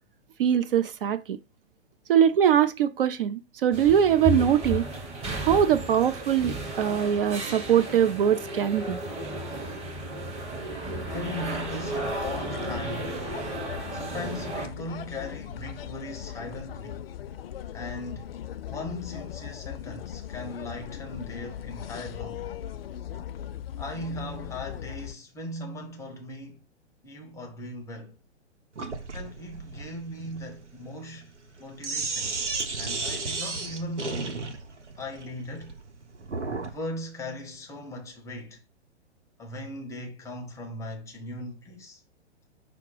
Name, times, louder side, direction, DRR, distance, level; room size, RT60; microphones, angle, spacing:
voice 1, 0.4-1.4 2.1-4.8 5.4-9.0, right 9 dB, 55° right, 0.5 m, -22 dB
sound 1, 3.7-14.7, right 1 dB, 20° right, 1.1 m, -34 dB
voice 2, 11.0-13.2 13.9-17.2 17.7-18.3 18.7-22.5 23.8-26.6 27.0-28.2 29.1-31.3 31.6-32.4 32.7-34.5 35.0-35.7 36.7-38.6 39.4-42.0, left 1 dB, 10° left, 0.6 m, -38 dB
sound 2, 11.2-25.1, left 10 dB, 60° left, 0.5 m, -39 dB
Sink (filling or washing), 28.8-36.8, right 3 dB, 90° right, 0.9 m, -34 dB
5.6 x 2.0 x 4.6 m
figure-of-eight pair, 115°, 34 cm